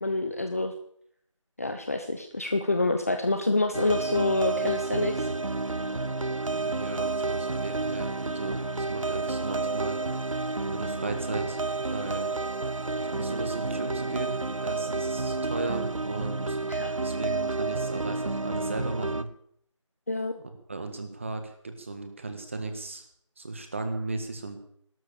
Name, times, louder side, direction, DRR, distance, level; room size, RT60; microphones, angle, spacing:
voice 1, 0.0-0.7 1.6-5.3 16.7-16.9 20.1-20.3, left 2 dB, 30° left, 6 dB, 0.8 m, -27 dB
sound 1, 3.7-19.2, right 3 dB, 80° right, 0.9 m, -30 dB
voice 2, 6.6-10.0 10.6-11.6 11.9-12.3 13.0-16.6 17.0-19.3 20.7-23.1 23.4-24.6, right 3 dB, 25° right, 7 dB, 1.7 m, -36 dB
15.0 x 13.0 x 6.9 m, 0.68 s
figure-of-eight pair, 170°, 17 cm